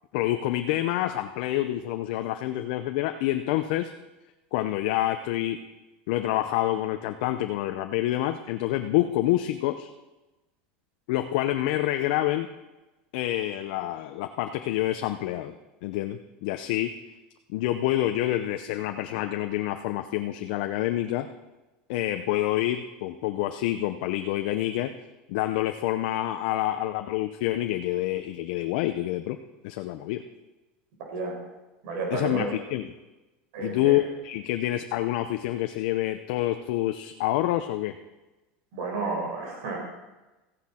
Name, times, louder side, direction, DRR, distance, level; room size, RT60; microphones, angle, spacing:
voice 1, 0.1-3.9 4.5-5.6 6.1-9.9 11.1-12.5 13.1-15.5 15.8-17.0 17.5-21.3 21.9-24.9 25.3-29.4 29.6-30.2 32.1-32.9 33.6-38.0, left 14 dB, 70° left, 7 dB, 0.6 m, -27 dB
voice 2, 31.1-31.4 31.8-32.5 33.5-34.0 38.7-39.8, right 3 dB, 70° right, -1 dB, 4.5 m, -31 dB
15.0 x 9.8 x 4.3 m, 1.1 s
supercardioid pair, 145°, 5 cm